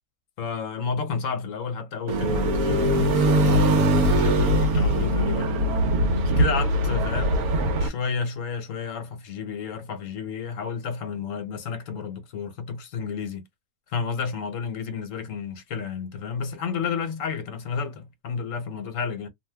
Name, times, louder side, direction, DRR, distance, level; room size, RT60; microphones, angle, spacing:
voice 1, 0.4-5.5 6.3-7.5 7.8-13.5 13.9-19.3, left 6 dB, 65° left, 1.1 m, -31 dB
sound 1, 2.1-7.9, right 1 dB, 80° right, 1.2 m, -21 dB
2.8 x 2.1 x 3.3 m
omnidirectional pair, 1.5 m